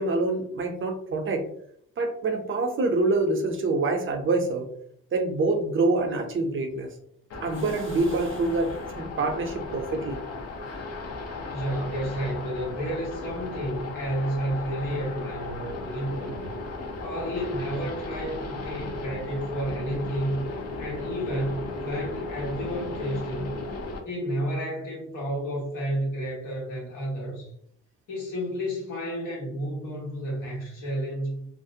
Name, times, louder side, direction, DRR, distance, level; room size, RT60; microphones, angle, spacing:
voice 1, 0.0-1.4 2.0-4.7 5.1-6.9 7.4-10.2, right 3 dB, 45° right, 3 dB, 0.6 m, -26 dB
sound 1, 7.3-24.0, left 2 dB, 55° left, 0.7 m, -36 dB
voice 2, 11.5-16.4 17.0-23.6 24.0-27.5 28.1-31.5, equal, 80° left, -3 dB, 1.2 m, -31 dB
2.5 x 2.0 x 2.7 m, 0.68 s
cardioid pair, 90°, 30 cm